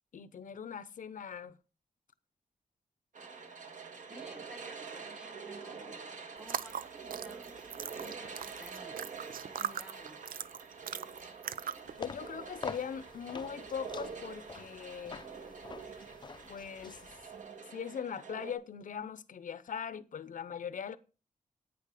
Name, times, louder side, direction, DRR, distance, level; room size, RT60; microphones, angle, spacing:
voice 1, 0.1-1.6 12.0-15.2 16.5-17.1 17.7-21.0, left 7 dB, 70° left, 0.7 m, -41 dB
sound 1, 3.1-18.5, right 5 dB, 60° right, 1.9 m, -46 dB
voice 2, 4.1-9.0 9.4-10.2, right 1 dB, 5° right, 1.0 m, -55 dB
sound 2, 6.4-11.9, right 8 dB, 90° right, 0.6 m, -40 dB
sound 3, 11.8-17.5, left 5 dB, 30° left, 0.5 m, -47 dB
10.5 x 9.1 x 4.9 m
wide cardioid pair, 160°, 14 cm